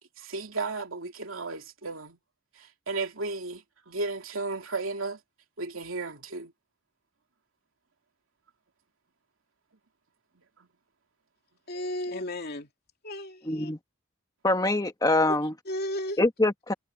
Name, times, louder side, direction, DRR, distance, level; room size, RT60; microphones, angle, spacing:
voice 1, 0.2-2.2 2.6-5.2 5.6-6.5, right 3 dB, 80° right, 2.8 m, -34 dB
voice 2, 11.7-12.7 13.0-13.7 15.3-15.4 15.7-16.2, left 1 dB, 50° left, 2.7 m, -34 dB
voice 3, 13.5-13.8 14.4-15.5 16.2-16.7, left 2 dB, 20° left, 1.5 m, -24 dB
head